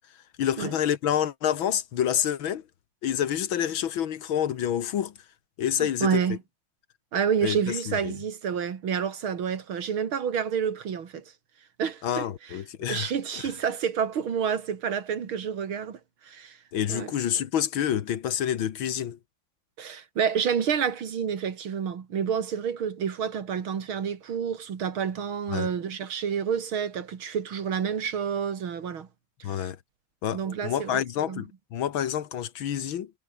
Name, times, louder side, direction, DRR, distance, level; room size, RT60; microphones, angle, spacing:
voice 1, 0.4-2.6 3.0-5.1 5.6-6.4 7.4-8.2 12.0-13.4 16.7-19.2 25.5-25.7 29.4-29.8 30.2-33.1, left 10 dB, 75° left, 2.0 m, -28 dB
voice 2, 5.8-6.4 7.1-11.2 11.8-12.3 12.9-16.0 16.3-16.6 16.9-17.1 19.8-29.1 29.6-29.7 30.3-31.4, right 7 dB, 80° right, 2.8 m, -29 dB
omnidirectional pair, 2.2 m